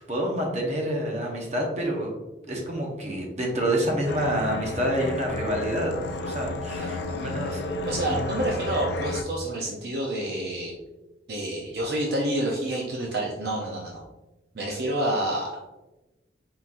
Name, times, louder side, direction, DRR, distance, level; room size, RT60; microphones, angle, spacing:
voice 1, 0.0-2.1 2.5-5.9 6.2-7.6 8.1-8.4, right 1 dB, 35° right, 0 dB, 0.9 m, -28 dB
sound 1, 4.1-9.2, left 2 dB, 65° left, 0.4 m, -32 dB
voice 2, 7.8-10.7 11.3-14.0 14.5-15.6, right 1 dB, 55° right, -2 dB, 0.6 m, -28 dB
4.2 x 3.8 x 2.5 m, 1.0 s
head